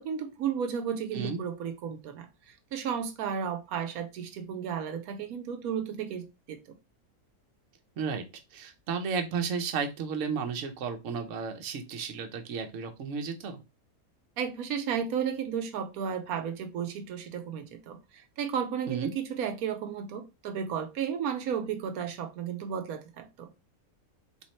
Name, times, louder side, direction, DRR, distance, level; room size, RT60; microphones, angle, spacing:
voice 1, 0.0-2.3 2.7-6.6 14.4-23.5, right 7 dB, 85° right, 1.1 m, -33 dB
voice 2, 8.5-13.6 18.9-19.1, right 6 dB, 65° right, 1.1 m, -33 dB
3.8 x 3.1 x 4.2 m
omnidirectional pair, 1.5 m